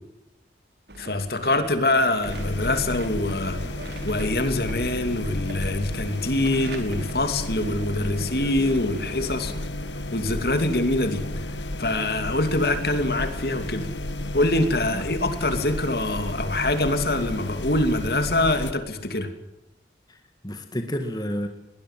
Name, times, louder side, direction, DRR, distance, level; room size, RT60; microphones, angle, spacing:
sound 1, 0.9-9.6, right 1 dB, 65° right, 4.3 m, -41 dB
voice 1, 1.0-3.6 4.0-9.5 10.1-11.2 11.8-13.9 14.3-19.3, left 2 dB, 60° left, 9 dB, 2.9 m, -24 dB
sound 2, 2.2-18.7, left 1 dB, 85° left, 1.9 m, -32 dB
voice 2, 20.1-21.5, equal, 20° left, 6 dB, 2.0 m, -31 dB
21.5 x 20.0 x 7.7 m, 0.92 s
head